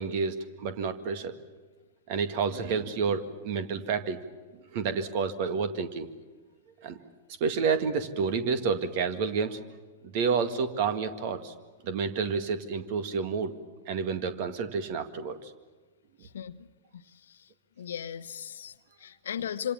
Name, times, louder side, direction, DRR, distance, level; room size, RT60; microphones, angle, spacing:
voice 1, 0.0-1.3 2.1-4.2 4.7-6.1 6.8-7.0 7.4-9.6 10.0-11.5 11.8-13.5 13.9-15.5, right 5 dB, 45° right, 10 dB, 2.0 m, -29 dB
voice 2, 16.3-16.7 16.9-17.4 17.8-19.7, left 9 dB, 65° left, 13 dB, 1.0 m, -37 dB
26.5 x 26.0 x 7.3 m, 1.3 s
figure-of-eight pair, 105°, 0 cm